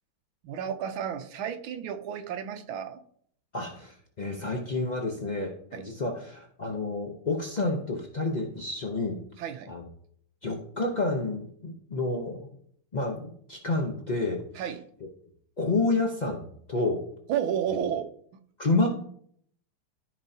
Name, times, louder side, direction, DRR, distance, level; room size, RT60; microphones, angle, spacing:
voice 1, 0.4-3.0 5.7-5.9 9.4-9.7 14.5-14.8 17.3-18.1, right 9 dB, 75° right, 8 dB, 1.6 m, -32 dB
voice 2, 3.5-9.2 9.7-9.9 10.4-12.5 12.9-14.4 15.6-16.4 16.7-17.0 18.6-18.9, left 2 dB, 85° left, 1 dB, 0.4 m, -29 dB
13.5 x 5.3 x 2.8 m, 0.62 s
omnidirectional pair, 2.3 m